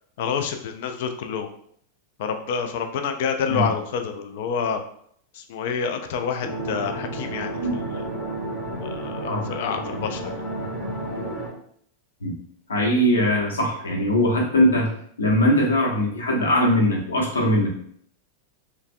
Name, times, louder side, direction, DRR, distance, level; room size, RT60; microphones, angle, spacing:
voice 1, 0.2-1.5 2.2-4.8 5.3-8.1 8.8-10.4, left 6 dB, 50° left, 6 dB, 0.3 m, -28 dB
sound 1, 6.4-11.5, right 1 dB, 25° left, 0.7 m, -31 dB
voice 2, 12.7-14.9 15.2-17.7, equal, 70° left, -2 dB, 0.8 m, -21 dB
3.2 x 2.0 x 2.4 m, 0.65 s
figure-of-eight pair, 90°, 0 cm